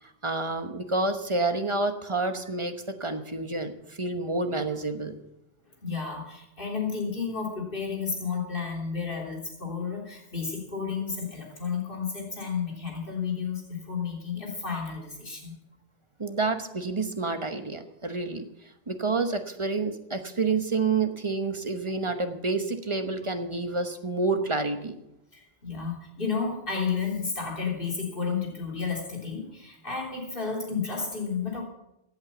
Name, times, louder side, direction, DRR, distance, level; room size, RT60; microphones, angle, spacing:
voice 1, 0.0-5.2 16.2-18.4 18.9-25.0, right 3 dB, 30° right, 7 dB, 1.1 m, -29 dB
voice 2, 5.8-15.5 25.3-31.6, left 5 dB, 55° left, 0 dB, 3.5 m, -32 dB
15.5 x 8.8 x 7.1 m, 0.87 s
omnidirectional pair, 1.1 m